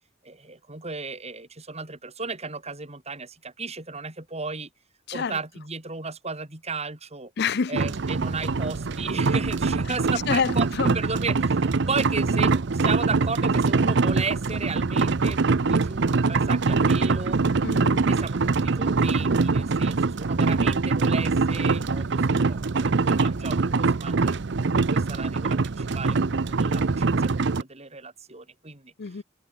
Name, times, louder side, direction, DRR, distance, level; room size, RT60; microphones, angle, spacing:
voice 1, 0.2-4.7 5.1-7.3 7.7-17.4 18.1-28.9, right 4 dB, 35° right, 4.3 m, -35 dB
voice 2, 7.4-7.7 10.3-10.9 17.6-18.1 29.0-29.2, left 5 dB, 55° left, 0.6 m, -27 dB
sound 1, 7.8-27.6, right 4 dB, 60° right, 0.7 m, -23 dB
head